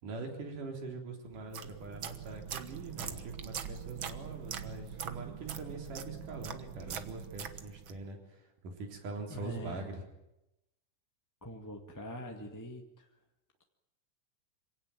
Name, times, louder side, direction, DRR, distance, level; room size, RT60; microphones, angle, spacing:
voice 1, 0.0-10.0, right 3 dB, 75° right, 3 dB, 5.2 m, -43 dB
sound 1, 1.3-8.0, right 8 dB, 55° right, 1.5 m, -43 dB
voice 2, 2.9-3.3 9.3-9.9 11.4-13.1, equal, 10° left, 2 dB, 1.3 m, -44 dB
26.5 x 17.5 x 9.2 m, 0.90 s
omnidirectional pair, 3.7 m